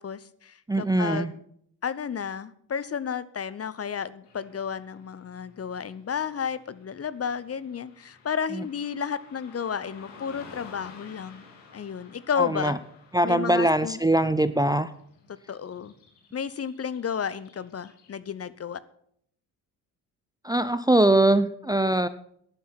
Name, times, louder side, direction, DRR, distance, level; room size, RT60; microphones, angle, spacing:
voice 1, 0.0-1.4 1.8-11.4 11.7-12.7 13.2-14.0 15.5-15.9 16.3-18.8, left 7 dB, 30° left, 15 dB, 0.9 m, -32 dB
voice 2, 0.7-1.3 8.5-8.6 12.4-12.8 13.1-14.9 20.4-22.1, right 1 dB, 10° right, 13 dB, 0.7 m, -22 dB
Car passing by / Traffic noise roadway noise, 4.2-18.5, left 4 dB, 65° left, 3.0 m, -53 dB
17.5 x 11.0 x 4.3 m, 0.67 s
figure-of-eight pair, 40°, 47 cm